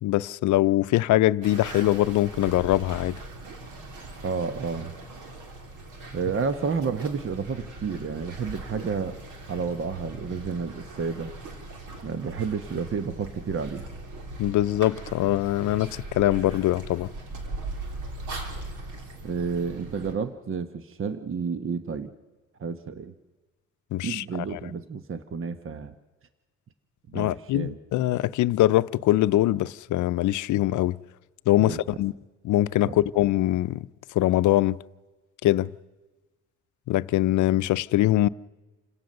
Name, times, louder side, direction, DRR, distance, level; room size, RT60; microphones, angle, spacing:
voice 1, 0.0-3.2 14.4-17.1 23.9-24.2 24.5-24.6 27.1-31.0 31.5-32.1 32.4-33.9 34.1-34.8 35.4-35.7 36.9-38.3, left 15 dB, 75° left, 0.6 m, -23 dB
sound 1, 1.4-20.1, right 2 dB, 85° right, 3.5 m, -40 dB
voice 2, 4.2-4.9 6.1-9.2 9.5-11.3 12.0-13.9 19.2-22.1 22.6-23.1 24.0-25.9 27.1-27.8 31.6-31.8 32.8-33.0, right 5 dB, 45° right, 1.2 m, -30 dB
28.0 x 17.5 x 6.7 m
cardioid pair, 90°, 30 cm